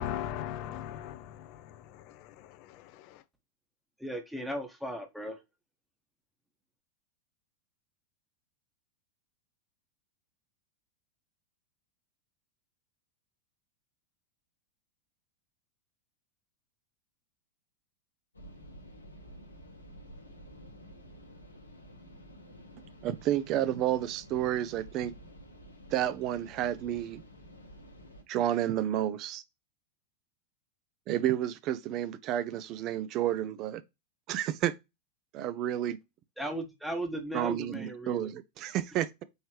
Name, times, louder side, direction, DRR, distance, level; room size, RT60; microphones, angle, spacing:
voice 1, 0.0-3.2, left 11 dB, 45° left, 0.4 m, -39 dB
voice 2, 4.0-5.4 36.4-38.3, right 1 dB, ahead, 1.0 m, -36 dB
sound 1, 18.3-28.2, equal, 80° left, 0.9 m, -51 dB
voice 3, 23.0-25.1 25.9-27.2 28.3-29.4 31.1-33.8 34.3-34.7 35.3-36.0 37.3-39.2, right 12 dB, 40° right, 0.5 m, -30 dB
4.5 x 3.2 x 3.1 m
figure-of-eight pair, 90°, 0 cm